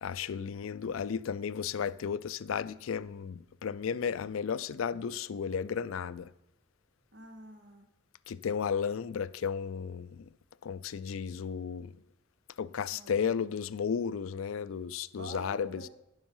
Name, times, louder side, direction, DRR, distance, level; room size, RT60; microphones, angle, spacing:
voice 1, 0.0-6.3 8.3-10.3 10.6-11.9 12.6-15.8, left 7 dB, 75° left, 0.4 m, -34 dB
voice 2, 7.1-7.9 12.9-13.5 15.2-15.9, right 1 dB, 55° right, 1.8 m, -47 dB
10.5 x 7.3 x 5.5 m
head